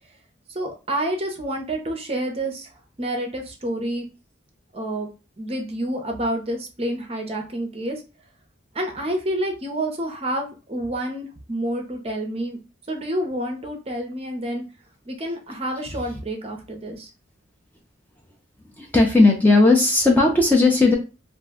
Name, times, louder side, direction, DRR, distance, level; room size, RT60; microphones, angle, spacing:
voice 1, 0.5-2.7 3.0-4.0 4.7-5.1 5.4-8.0 8.7-12.6 12.9-14.6 15.1-17.1, right 1 dB, 30° right, 2 dB, 0.6 m, -28 dB
voice 2, 18.8-21.0, left 2 dB, 10° left, -1 dB, 0.4 m, -16 dB
2.5 x 2.1 x 3.5 m, 0.31 s
head